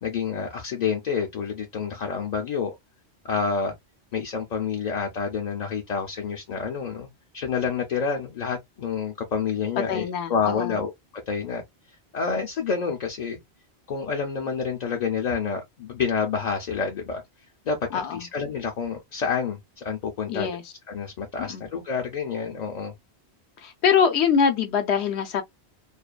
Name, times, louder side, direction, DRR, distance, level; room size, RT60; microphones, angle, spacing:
voice 1, 0.0-2.8 3.2-3.7 4.1-7.1 7.3-10.9 11.3-11.6 12.1-13.4 13.9-17.2 17.7-20.5 20.9-22.9, left 6 dB, 55° left, 0.5 m, -28 dB
voice 2, 9.9-10.8 17.9-18.3 20.3-20.6 21.4-21.6 23.6-25.4, left 7 dB, 80° left, 0.9 m, -24 dB
2.5 x 2.1 x 2.3 m
omnidirectional pair, 1.1 m